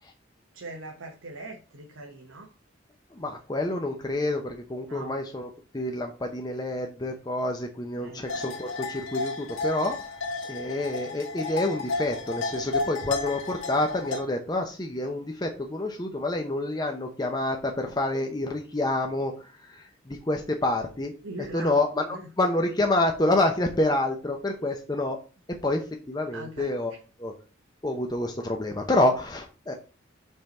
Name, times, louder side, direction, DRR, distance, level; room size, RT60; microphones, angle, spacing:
voice 1, 0.5-2.5 4.8-5.1 8.0-8.2 21.2-21.8 22.1-22.3 26.3-26.7, right 2 dB, 85° right, 1 dB, 1.1 m, -41 dB
voice 2, 3.1-5.5 5.7-10.0 10.5-21.2 21.5-22.0 22.4-25.2 25.6-26.9 27.2-27.3 27.8-29.7, left 2 dB, 20° left, 3 dB, 0.7 m, -28 dB
sound 1, 8.3-14.2, left 3 dB, 80° left, 1.6 m, -32 dB
5.4 x 4.5 x 5.4 m, 0.35 s
head